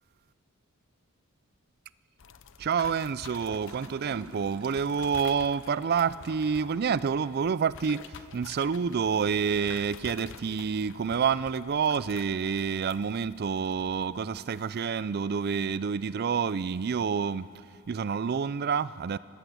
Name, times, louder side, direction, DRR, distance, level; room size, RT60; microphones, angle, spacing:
sound 1, 2.2-14.9, left 6 dB, 60° left, 0.7 m, -49 dB
voice 1, 2.6-19.2, right 6 dB, 45° right, 0.4 m, -28 dB
Gurgling / Toilet flush, 3.5-7.4, right 3 dB, 80° right, 1.3 m, -49 dB
26.5 x 13.0 x 8.1 m
head